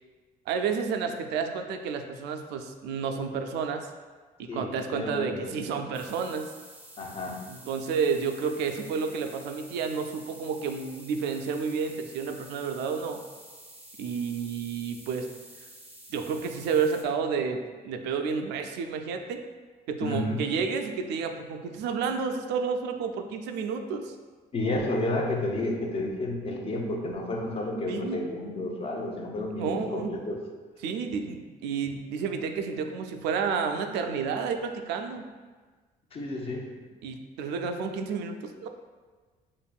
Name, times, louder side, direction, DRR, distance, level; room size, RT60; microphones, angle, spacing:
voice 1, 0.5-3.9 4.4-6.5 7.5-13.2 14.0-15.3 16.1-19.4 19.9-24.1 27.9-28.2 29.6-30.1 30.8-35.3 37.0-38.7, right 5 dB, 85° right, 5 dB, 0.4 m, -30 dB
voice 2, 4.5-5.5 7.0-7.4 20.0-20.5 24.5-30.4 36.1-36.7, left 1 dB, 35° left, 1 dB, 0.6 m, -31 dB
sound 1, 5.9-17.0, right 1 dB, 10° right, 0.6 m, -50 dB
5.3 x 2.5 x 2.3 m, 1.4 s
cardioid pair, 110°, 17 cm